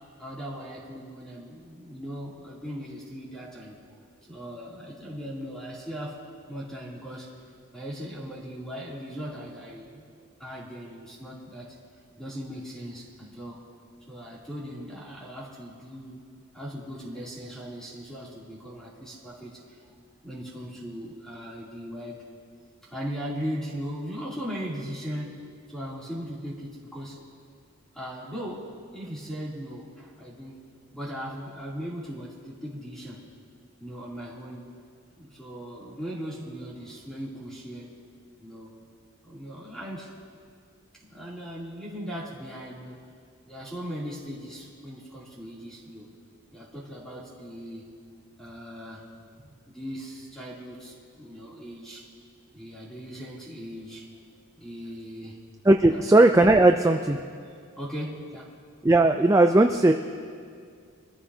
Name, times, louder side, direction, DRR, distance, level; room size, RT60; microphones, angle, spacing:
voice 1, 0.2-3.8 4.3-6.2 6.5-7.3 7.7-10.0 10.4-11.8 12.2-13.6 14.1-16.2 16.5-19.9 20.2-22.2 22.8-25.4 25.7-27.2 27.9-28.7 28.9-30.6 30.9-33.2 33.8-34.6 35.2-37.9 38.4-38.7 39.2-40.1 41.0-43.0 43.5-46.1 46.5-47.9 48.4-49.0 49.3-52.0 52.5-54.1 54.3-55.4 55.9-56.1 57.8-58.5, equal, ahead, -6 dB, 2.9 m, -38 dB
voice 2, 55.6-57.2 58.8-59.9, right 2 dB, 15° right, 5 dB, 0.3 m, -18 dB
24.5 x 14.0 x 2.8 m, 2.2 s
head